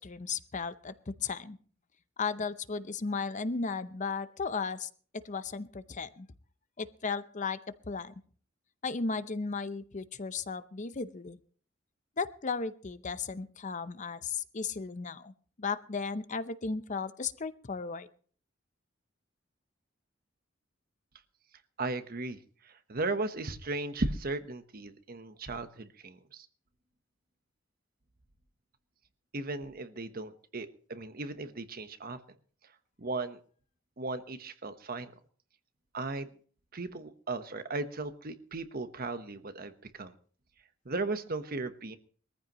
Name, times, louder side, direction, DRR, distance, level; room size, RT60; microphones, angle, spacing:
voice 1, 0.0-1.6 2.2-6.3 6.8-7.6 7.9-8.1 8.8-11.4 12.2-15.3 15.6-18.1, left 4 dB, 40° left, 13 dB, 0.7 m, -35 dB
voice 2, 21.8-22.4 22.6-26.5 29.3-32.2 33.0-33.4 34.0-35.1 35.9-36.3 36.7-40.1 40.8-42.0, right 2 dB, 50° right, 10 dB, 1.1 m, -36 dB
21.5 x 14.5 x 3.0 m, 0.43 s
head